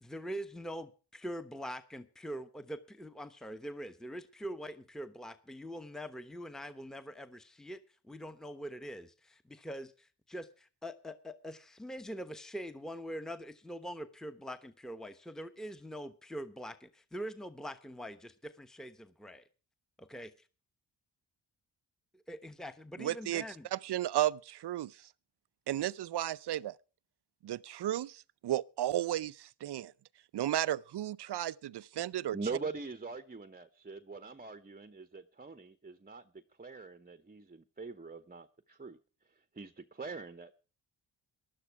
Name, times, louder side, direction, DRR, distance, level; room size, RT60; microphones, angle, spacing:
voice 1, 0.0-19.4 20.0-20.3 22.1-23.7, equal, ahead, 1.1 m, -43 dB
voice 2, 23.0-23.4 23.7-25.0 25.7-26.7 27.4-29.9 30.3-32.4, right 13 dB, 60° right, 0.6 m, -34 dB
voice 3, 32.3-39.0 39.5-40.5, right 4 dB, 20° right, 0.9 m, -43 dB
15.5 x 11.5 x 4.7 m
cardioid pair, 60°, 45 cm